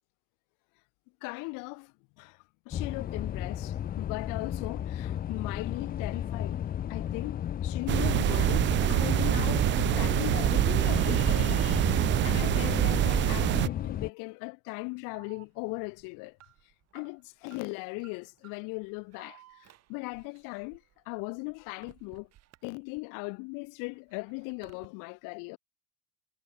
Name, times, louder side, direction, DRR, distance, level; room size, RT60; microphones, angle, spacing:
voice 1, 1.2-6.6 6.9-16.4 16.9-22.3 22.6-25.6, left 31 dB, 85° left, 1.3 m, -38 dB
sound 1, 2.7-14.1, left 10 dB, 30° left, 0.5 m, -34 dB
sound 2, 7.9-13.7, right 14 dB, 35° right, 0.5 m, -25 dB
Alarm, 15.1-23.3 23.6-24.9, right 14 dB, 55° right, 5.5 m, -59 dB
cardioid pair, 135°, 31 cm